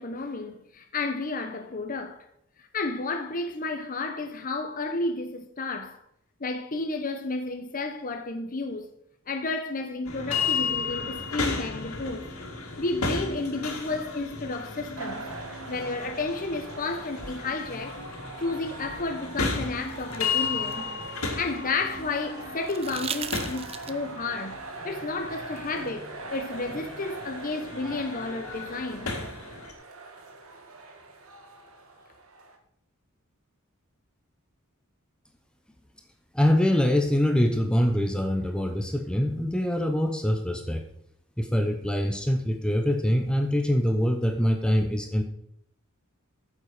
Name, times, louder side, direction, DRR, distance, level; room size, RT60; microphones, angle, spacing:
voice 1, 0.0-2.3 2.6-6.0 6.4-9.0 9.3-12.3 12.8-15.3 15.7-20.9 21.4-24.6 24.8-29.2, left 3 dB, 40° left, 0.9 m, -32 dB
sound 1, 10.0-29.7, left 4 dB, 90° left, 2.3 m, -34 dB
sound 2, 15.0-32.6, right 3 dB, 75° right, 1.7 m, -42 dB
sound 3, 19.5-21.8 22.7-24.2 25.9-26.0, right 7 dB, 25° right, 0.6 m, -38 dB
voice 2, 36.3-40.9 41.4-45.2, equal, 5° left, 0.8 m, -24 dB
9.4 x 7.5 x 4.9 m
head